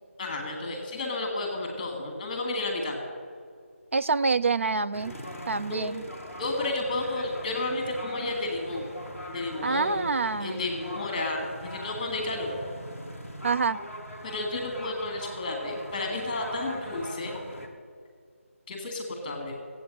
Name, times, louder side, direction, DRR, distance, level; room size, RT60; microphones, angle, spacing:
voice 1, 0.2-3.0 5.7-6.0 6.4-8.9 9.3-10.1 10.4-12.6 14.2-17.6 18.7-19.5, left 2 dB, 15° left, 2 dB, 2.0 m, -32 dB
voice 2, 3.9-5.2 5.5-6.1 9.6-10.6 13.4-13.8, right 4 dB, 60° right, 13 dB, 0.5 m, -26 dB
sound 1, 4.9-17.7, equal, 10° right, 0.9 m, -41 dB
14.5 x 8.4 x 9.2 m, 2.1 s
figure-of-eight pair, 170°, 8 cm